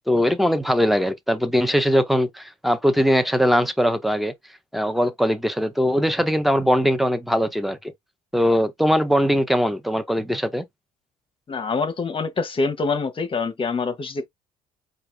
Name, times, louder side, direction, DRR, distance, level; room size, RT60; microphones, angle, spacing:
voice 1, 0.1-4.3 4.7-7.9 8.3-10.6, equal, ahead, 0.7 m, -21 dB
voice 2, 11.5-14.3, left 4 dB, 30° left, 1.1 m, -25 dB
4.6 x 2.4 x 3.4 m
cardioid pair, 110°, 17 cm